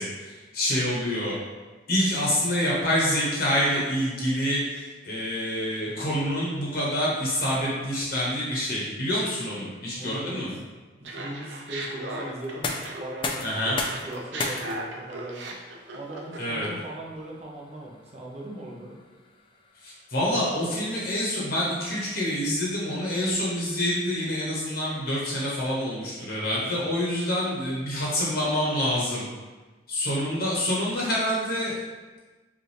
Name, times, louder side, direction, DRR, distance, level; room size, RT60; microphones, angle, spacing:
voice 1, 0.0-1.4 1.9-10.5 13.4-13.8 16.4-16.7 19.8-29.2 29.9-31.8, equal, 50° left, -6 dB, 0.9 m, -27 dB
voice 2, 9.9-10.4 11.0-12.7 13.0-13.7 14.0-15.5 15.9-19.0, right 1 dB, 35° right, -3 dB, 0.8 m, -39 dB
Laughter, 11.0-13.3 13.6-16.8, right 1 dB, 70° right, 0.6 m, -37 dB
sound 1, 12.4-24.2, left 3 dB, 25° left, 0.3 m, -39 dB
5.3 x 2.5 x 3.2 m, 1.3 s
head